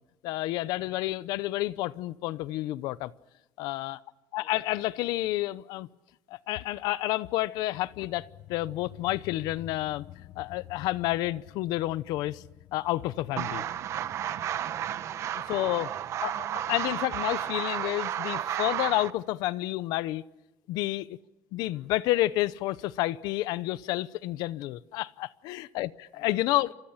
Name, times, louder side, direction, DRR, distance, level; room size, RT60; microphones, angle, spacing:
voice 1, 0.2-3.1 3.6-4.0 4.3-5.9 6.3-10.1 10.4-12.4 12.7-13.6 15.5-15.9 16.2-20.2 20.7-21.2 21.5-26.7, left 17 dB, 90° left, 0.8 m, -30 dB
voice 2, 4.3-5.0 13.9-14.4 15.0-16.9 21.6-21.9 26.1-26.5, left 2 dB, 20° left, 4.7 m, -59 dB
sound 1, 7.8-18.8, left 14 dB, 60° left, 1.0 m, -51 dB
sound 2, 13.4-19.1, right 10 dB, 45° right, 1.0 m, -32 dB
29.5 x 26.5 x 5.8 m
cardioid pair, 165°, 7 cm